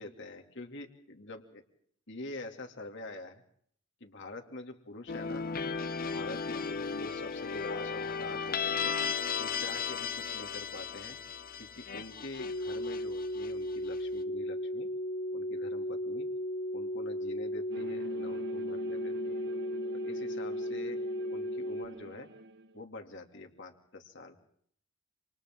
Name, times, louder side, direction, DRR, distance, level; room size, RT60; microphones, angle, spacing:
voice 1, 0.0-1.6 2.1-3.4 4.0-5.5 6.1-9.0 9.4-11.2 11.6-14.9 15.3-16.3 16.7-19.5 19.9-21.0 21.3-22.3 22.7-24.4, left 2 dB, 65° left, 3 dB, 2.8 m, -46 dB
sound 1, 5.1-14.0, left 5 dB, 45° left, 0.8 m, -35 dB
sound 2, 12.4-21.8, equal, 85° left, 5.2 m, -35 dB
sound 3, 17.7-22.8, equal, 60° right, 1.1 m, -46 dB
28.0 x 28.0 x 3.8 m, 0.63 s
head